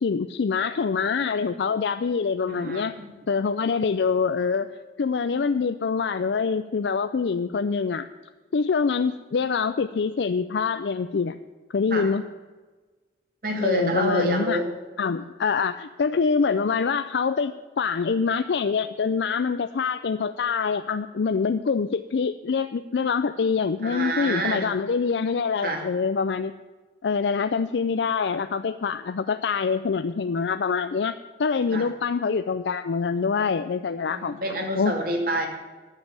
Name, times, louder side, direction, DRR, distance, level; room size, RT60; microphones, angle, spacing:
voice 1, 0.0-2.9 3.3-4.7 5.0-8.1 8.5-11.4 11.7-12.2 13.6-14.6 15.0-26.5 27.0-34.4 34.8-34.9, left 5 dB, 80° left, 10 dB, 0.4 m, -25 dB
voice 2, 2.5-3.1 11.9-12.1 13.4-14.7 23.8-24.7 25.6-25.8 31.7-31.9 34.1-35.5, right 1 dB, 55° right, 2 dB, 2.4 m, -27 dB
9.8 x 7.4 x 9.1 m, 1.3 s
head